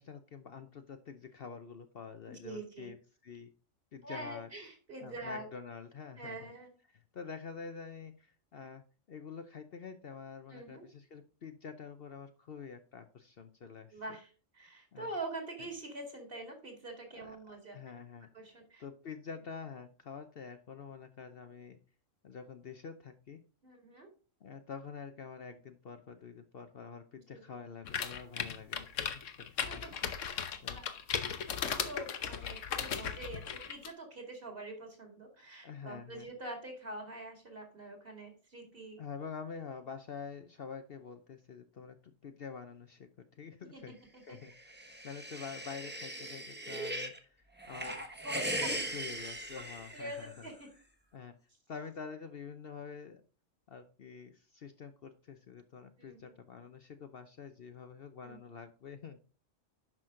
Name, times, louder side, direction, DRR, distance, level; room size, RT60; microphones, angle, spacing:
voice 1, 0.0-3.0 3.2-3.5 3.9-4.5 5.0-6.5 6.9-14.0 14.9-15.1 17.1-18.3 18.8-21.8 22.2-23.4 24.4-29.2 29.7-29.8 30.3-30.8 35.6-36.3 39.0-44.0 44.3-48.0 48.3-50.5 51.1-51.3 51.7-53.2 53.7-59.2, left 6 dB, 55° left, 8 dB, 0.8 m, -47 dB
voice 2, 2.3-2.9 4.0-5.5 6.2-6.7 10.5-10.8 13.9-17.8 18.3-18.8 23.6-24.1 27.3-27.4 29.7-30.3 30.7-30.9 31.6-39.0 43.7-43.9 44.3-44.4 48.2-48.9 49.5-49.6 49.9-50.7 56.0-56.4 58.2-58.4, right 2 dB, 45° right, 3 dB, 2.8 m, -45 dB
sound 1, 27.8-33.9, left 7 dB, 70° left, 1.2 m, -37 dB
sound 2, 44.5-47.2 47.6-50.5, right 1 dB, 10° right, 1.2 m, -39 dB
10.5 x 6.1 x 3.7 m, 0.37 s
omnidirectional pair, 1.3 m